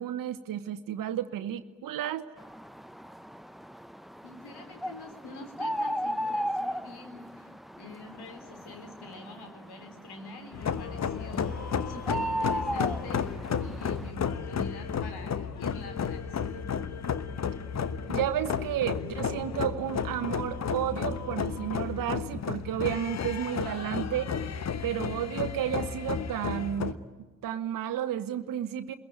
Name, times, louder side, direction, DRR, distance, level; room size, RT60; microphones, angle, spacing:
voice 1, 0.0-2.2 18.1-24.3 24.8-27.0 27.4-28.9, right 11 dB, 45° right, 9 dB, 1.1 m, -32 dB
sound 1, 2.4-14.1, equal, ahead, 0.8 m, -36 dB
voice 2, 4.2-13.3 13.6-16.7, left 2 dB, 55° left, 7 dB, 3.8 m, -46 dB
sound 2, 10.5-26.9, left 7 dB, 35° left, 1.3 m, -32 dB
28.0 x 22.0 x 9.4 m, 1.2 s
figure-of-eight pair, 40°, 46 cm